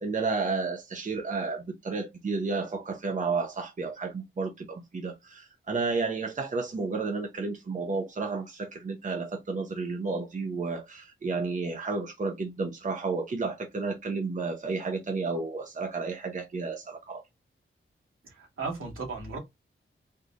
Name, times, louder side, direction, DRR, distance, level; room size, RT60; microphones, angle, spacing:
voice 1, 0.0-17.2, right 4 dB, 40° right, 0.9 m, -32 dB
voice 2, 18.2-19.4, right 4 dB, 80° right, 2.3 m, -36 dB
4.5 x 3.3 x 2.5 m
wide cardioid pair, 115°, 21 cm